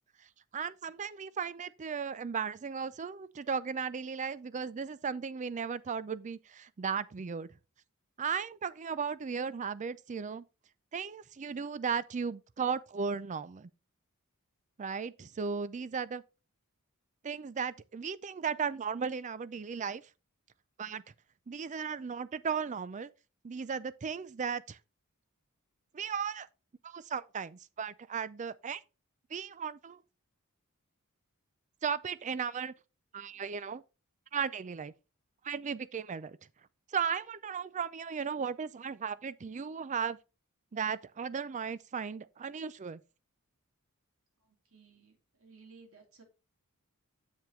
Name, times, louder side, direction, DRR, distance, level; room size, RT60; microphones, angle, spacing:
voice 1, 0.5-7.5 8.2-10.4 10.9-13.7 14.8-16.2 17.2-20.0 20.8-21.0 21.5-23.1 23.4-24.8 25.9-26.5 26.8-28.8 29.3-30.0 31.8-32.7 33.1-33.8 34.3-34.9 35.4-36.4 36.9-40.2 40.7-43.0, right 6 dB, 35° right, 0.4 m, -36 dB
voice 2, 44.4-46.2, right 4 dB, 65° right, 2.6 m, -58 dB
7.6 x 7.2 x 3.2 m
head